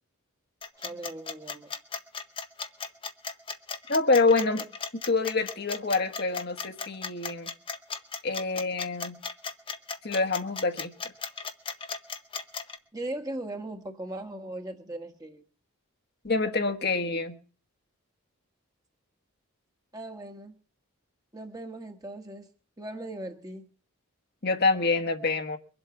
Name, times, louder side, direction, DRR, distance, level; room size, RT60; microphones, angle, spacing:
sound 1, 0.6-12.8, left 5 dB, 25° left, 0.8 m, -36 dB
voice 1, 0.8-1.7 12.9-15.4 19.9-20.5 21.3-22.5 22.8-23.7, right 1 dB, 15° right, 1.4 m, -38 dB
voice 2, 3.9-4.7 5.1-7.5 8.2-9.2 10.0-10.9 16.2-17.4 24.4-25.6, left 3 dB, 45° left, 1.3 m, -26 dB
23.0 x 8.1 x 7.0 m
head